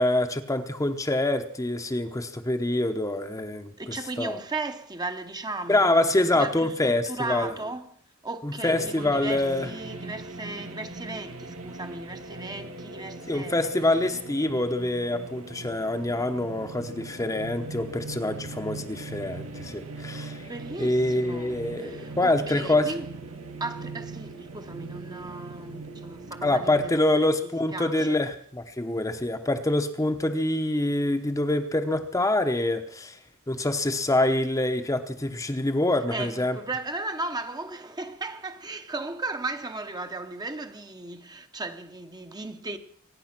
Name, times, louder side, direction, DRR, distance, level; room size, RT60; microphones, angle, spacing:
voice 1, 0.0-4.4 5.7-7.5 8.4-9.7 13.3-20.4 20.8-22.9 26.4-33.2 33.5-36.6, left 1 dB, 15° left, 0.9 m, -25 dB
voice 2, 3.8-13.7 20.5-23.1 23.6-28.2 36.1-42.8, right 2 dB, 20° right, 1.0 m, -36 dB
sound 1, 8.6-27.0, right 3 dB, 85° right, 2.0 m, -40 dB
24.0 x 10.0 x 6.0 m
head